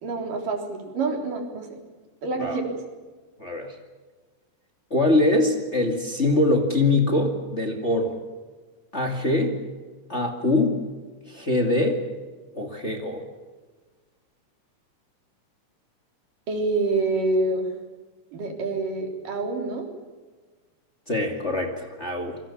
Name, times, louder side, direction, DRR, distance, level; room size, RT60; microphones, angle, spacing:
voice 1, 0.0-1.8 2.2-2.8 16.5-17.7 18.3-19.9, right 3 dB, 80° right, 3 dB, 5.3 m, -27 dB
voice 2, 3.4-3.7 4.9-8.2 8.9-9.6 10.1-10.8 11.3-12.0 12.5-13.2 21.1-22.4, left 2 dB, 25° left, 3 dB, 2.2 m, -23 dB
27.0 x 23.5 x 7.3 m, 1.4 s
omnidirectional pair, 3.7 m